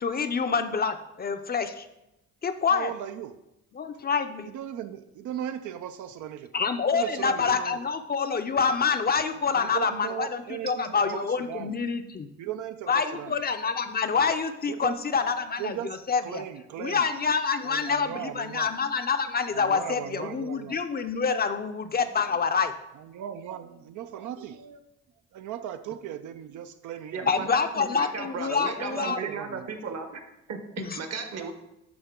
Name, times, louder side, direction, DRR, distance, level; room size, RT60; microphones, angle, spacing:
voice 1, 0.0-1.9 2.4-2.9 3.7-4.5 6.5-12.3 12.9-15.7 16.1-16.4 16.8-22.7 27.3-29.2 30.8-31.0, left 5 dB, 30° left, 8 dB, 0.5 m, -27 dB
voice 2, 2.7-3.3 4.4-6.5 6.9-7.8 8.4-8.7 9.5-11.8 12.4-13.4 14.7-15.0 15.2-17.2 17.5-18.7 19.5-20.8 22.9-24.8 25.3-27.6 28.9-29.7 31.3-31.5, right 10 dB, 75° right, 9 dB, 0.5 m, -38 dB
voice 3, 27.1-30.2 30.5-31.5, right 5 dB, 60° right, 7 dB, 1.1 m, -35 dB
11.0 x 3.9 x 3.7 m, 0.88 s
cardioid pair, 90°, 30 cm